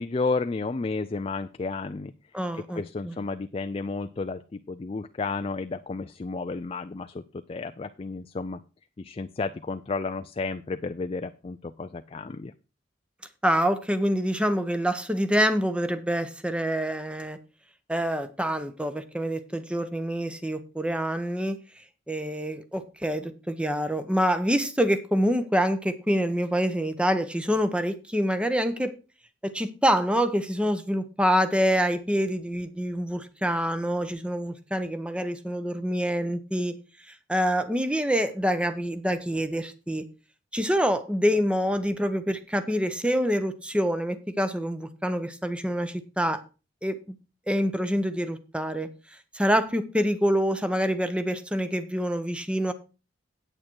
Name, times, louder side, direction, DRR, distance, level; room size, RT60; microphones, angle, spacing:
voice 1, 0.0-2.1 2.7-8.6 9.0-12.5, left 3 dB, 30° left, 0.4 m, -32 dB
voice 2, 2.3-3.2 13.4-17.4 17.9-21.6 22.1-28.9 29.4-36.8 37.1-40.0 40.5-46.4 46.8-47.1 47.5-48.9 49.3-52.7, equal, 5° right, 0.8 m, -26 dB
8.7 x 8.7 x 4.6 m
head